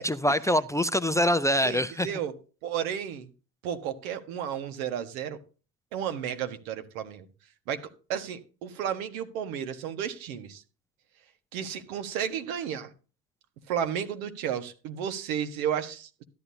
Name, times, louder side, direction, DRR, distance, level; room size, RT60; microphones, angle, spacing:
voice 1, 0.0-2.1, equal, 10° left, 0.5 m, -24 dB
voice 2, 1.6-2.3 2.6-3.3 3.6-5.4 5.9-7.3 7.7-7.8 8.1-10.6 11.5-12.9 13.7-16.2, right 9 dB, 80° right, 1.6 m, -32 dB
13.5 x 10.5 x 2.8 m
hypercardioid pair, 75°, 41 cm